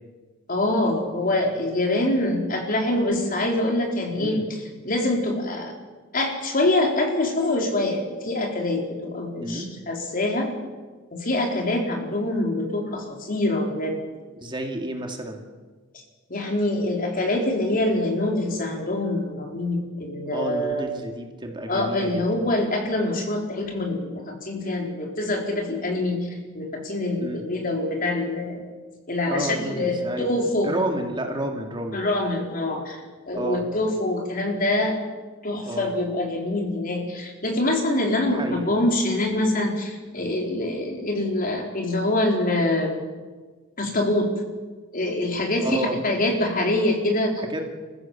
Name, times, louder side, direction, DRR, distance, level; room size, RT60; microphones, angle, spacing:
voice 1, 0.5-5.8 6.1-10.5 11.1-14.0 16.3-20.9 21.7-26.3 26.5-28.6 29.1-30.7 31.9-33.0 33.3-35.0 35.4-43.0 43.8-44.3 44.9-47.4, left 1 dB, 45° left, 1 dB, 4.1 m, -25 dB
voice 2, 4.2-4.5 9.4-9.7 14.4-15.4 20.3-22.5 27.2-27.4 29.3-30.3 30.6-32.0 33.3-33.6 35.7-35.9 38.3-38.7 45.6-46.0 47.4-47.6, right 1 dB, 25° right, 3 dB, 2.3 m, -30 dB
27.5 x 15.0 x 7.4 m, 1.4 s
head